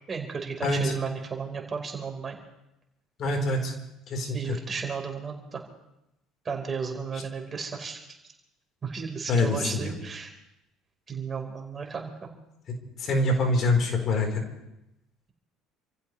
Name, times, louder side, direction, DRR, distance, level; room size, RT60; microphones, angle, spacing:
voice 1, 0.1-2.4 4.3-5.6 6.4-8.0 8.8-10.3 11.1-12.1, right 5 dB, 30° right, 2 dB, 4.3 m, -34 dB
voice 2, 0.6-0.9 3.2-3.7 4.1-4.4 9.3-9.9 13.0-14.4, left 2 dB, 50° left, 4 dB, 4.0 m, -25 dB
29.0 x 15.5 x 3.2 m, 0.89 s
supercardioid pair, 80°, 0 cm